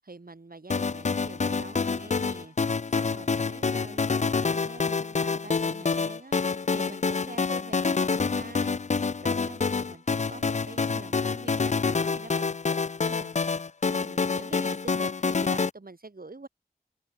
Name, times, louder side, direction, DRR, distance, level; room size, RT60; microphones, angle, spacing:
voice 1, 0.0-13.4 13.8-16.5, right 3 dB, 70° right, 5.3 m, -46 dB
sound 1, 0.7-15.7, left 4 dB, 50° left, 0.4 m, -27 dB
wide cardioid pair, 40°, 15 cm